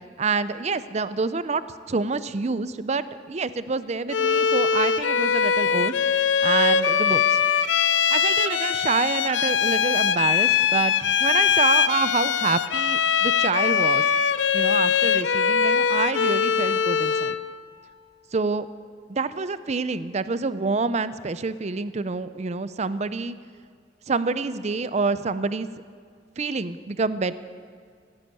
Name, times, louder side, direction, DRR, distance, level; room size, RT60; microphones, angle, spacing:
voice 1, 0.2-1.6 1.9-7.4 8.1-14.0 14.5-17.4 18.3-18.7 19.1-23.4 24.1-25.7 26.4-27.4, right 4 dB, 35° right, 14 dB, 0.5 m, -27 dB
Bowed string instrument, 4.1-17.5, left 7 dB, 85° left, 0.5 m, -22 dB
16.0 x 10.0 x 8.9 m, 2.1 s
head